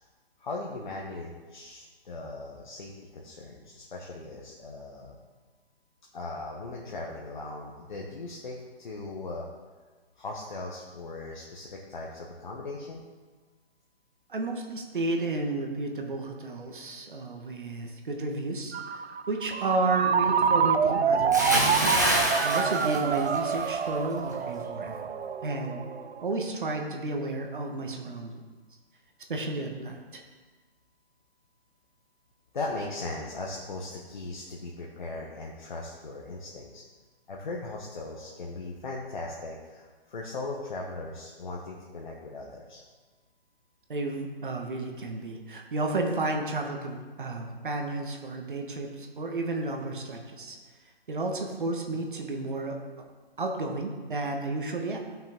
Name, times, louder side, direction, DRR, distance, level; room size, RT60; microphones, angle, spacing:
voice 1, 0.4-5.2 6.1-9.5 10.2-13.0 32.5-36.8 37.3-42.8, left 2 dB, 50° left, -2 dB, 1.1 m, -38 dB
voice 2, 14.3-22.0 22.4-25.0 25.4-25.8 26.2-28.5 29.3-30.2 43.9-50.6 51.1-52.8 53.4-55.0, right 2 dB, 55° right, 2 dB, 1.3 m, -32 dB
Ringtone, 18.7-26.2, right 6 dB, 90° right, 0.7 m, -27 dB
Bathtub (filling or washing) / Splash splatter, 21.3-23.7 24.0-24.3, right 1 dB, 20° right, 0.5 m, -26 dB
13.5 x 5.8 x 3.6 m, 1.3 s
hypercardioid pair, 180°, 31 cm